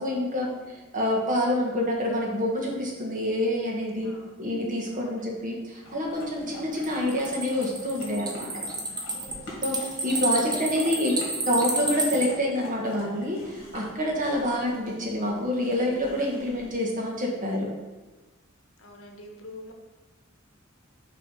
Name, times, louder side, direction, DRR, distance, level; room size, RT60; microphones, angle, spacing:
voice 1, 0.0-4.1 4.4-8.6 9.6-9.8 10.0-11.1 11.5-17.7, left 1 dB, 40° right, -2 dB, 1.3 m, -27 dB
voice 2, 4.0-4.5 4.9-5.3 9.5-10.1 10.4-11.2 18.8-19.7, left 2 dB, 85° left, 2 dB, 1.0 m, -47 dB
sound 1, 5.8-16.7, left 1 dB, 60° left, 2.0 m, -44 dB
sound 2, 6.7-12.3, right 2 dB, 20° right, 0.8 m, -30 dB
6.5 x 3.3 x 5.4 m, 1.2 s
head